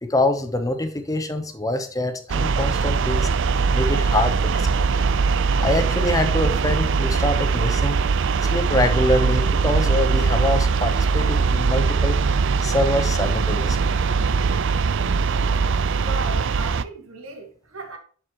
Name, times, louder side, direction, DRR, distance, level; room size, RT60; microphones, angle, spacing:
voice 1, 0.0-3.3 3.7-4.9 5.6-8.0 8.4-12.2 12.6-13.9, left 1 dB, 15° left, 0.9 m, -25 dB
sound 1, 2.3-16.8, right 4 dB, 65° right, 0.5 m, -21 dB
voice 2, 16.0-18.0, right 3 dB, 90° right, 2.0 m, -36 dB
7.8 x 6.6 x 3.0 m
head